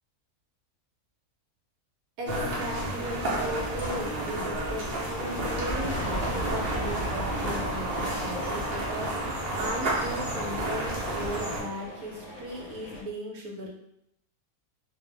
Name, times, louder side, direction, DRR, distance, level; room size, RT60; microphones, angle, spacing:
voice 1, 2.2-13.7, right 1 dB, 75° right, -1 dB, 1.1 m, -37 dB
sound 1, 2.3-11.6, right 1 dB, 50° right, 0.8 m, -31 dB
sound 2, 5.1-13.0, left 1 dB, 60° left, 0.9 m, -44 dB
sound 3, 5.7-10.3, right 1 dB, 40° left, 0.6 m, -36 dB
2.7 x 2.0 x 3.2 m, 0.78 s
omnidirectional pair, 1.6 m